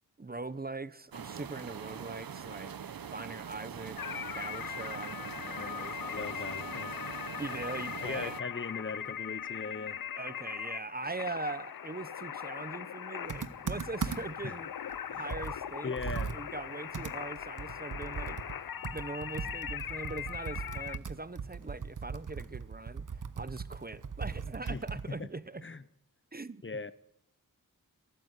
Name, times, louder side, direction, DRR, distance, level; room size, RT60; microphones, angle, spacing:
voice 1, 0.2-6.3 7.4-8.3 10.2-14.7 15.1-15.9 16.3-25.6 26.3-26.6, right 3 dB, 25° right, 0.9 m, -41 dB
sound 1, 1.1-8.4, right 8 dB, 80° right, 0.8 m, -43 dB
sound 2, 4.0-21.0, left 9 dB, 80° left, 0.7 m, -40 dB
voice 2, 6.1-6.9 8.0-10.0 14.4-14.6 15.1-15.3 15.8-16.3 24.6-25.3 25.6-25.8 26.6-26.9, left 4 dB, 35° left, 0.8 m, -39 dB
Computer keyboard, 13.3-14.5 14.9-15.0 15.3-25.2, right 5 dB, 60° right, 1.2 m, -39 dB
24.5 x 14.0 x 8.2 m
wide cardioid pair, 90°, 35 cm